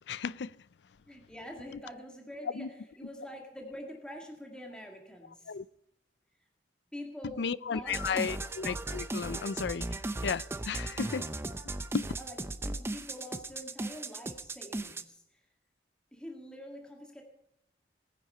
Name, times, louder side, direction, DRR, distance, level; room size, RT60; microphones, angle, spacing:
voice 1, 0.1-0.5 2.5-2.7 5.5-5.6 7.4-9.9 10.2-11.3 11.9-12.1, left 6 dB, 80° left, 0.5 m, -34 dB
voice 2, 1.1-5.6 6.9-8.4 12.2-12.4 12.6-15.4 16.1-17.2, equal, 5° left, 1.8 m, -46 dB
sound 1, 7.9-15.0, right 2 dB, 15° right, 0.6 m, -37 dB
19.5 x 9.8 x 5.5 m
head